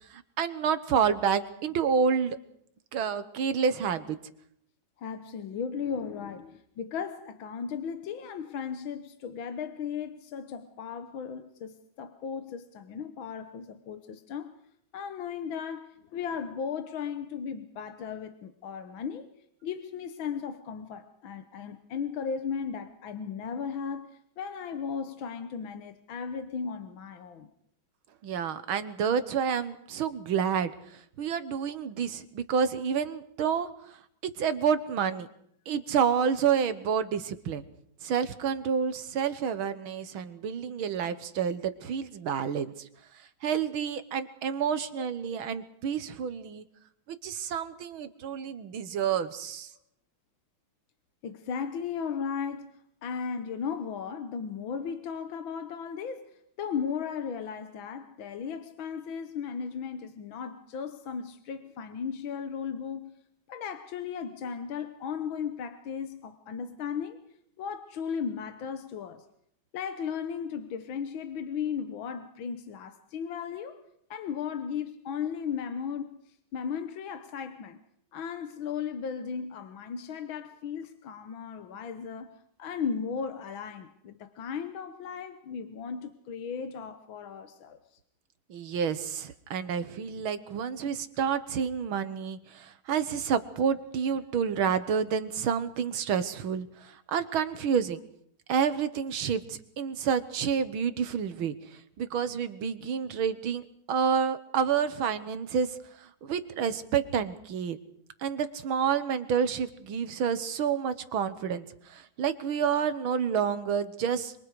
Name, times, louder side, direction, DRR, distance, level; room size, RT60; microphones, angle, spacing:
voice 1, 0.1-2.4 2.9-4.2 28.2-33.7 34.2-35.3 35.7-37.6 38.0-42.9 43.1-46.7 47.1-49.7 88.5-98.0 98.5-107.8 108.2-114.3, right 7 dB, 90° right, 12 dB, 2.1 m, -29 dB
voice 2, 5.0-14.5 14.9-19.3 19.6-27.5 44.9-45.4 51.2-52.7 53.0-63.2 63.5-67.2 67.6-69.3 69.7-73.8 74.1-77.8 78.1-87.8, left 6 dB, 75° left, 8 dB, 1.9 m, -36 dB
26.5 x 25.0 x 4.9 m, 0.69 s
omnidirectional pair, 2.2 m